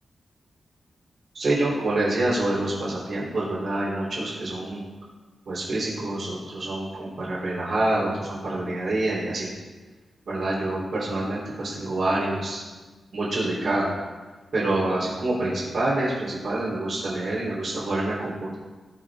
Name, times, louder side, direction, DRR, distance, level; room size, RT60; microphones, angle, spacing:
voice 1, 1.3-4.8 5.5-9.5 10.3-12.6 13.1-13.9 14.5-18.5, right 2 dB, 50° right, -10 dB, 3.8 m, -26 dB
19.0 x 7.2 x 3.8 m, 1.3 s
wide cardioid pair, 155°, 0 cm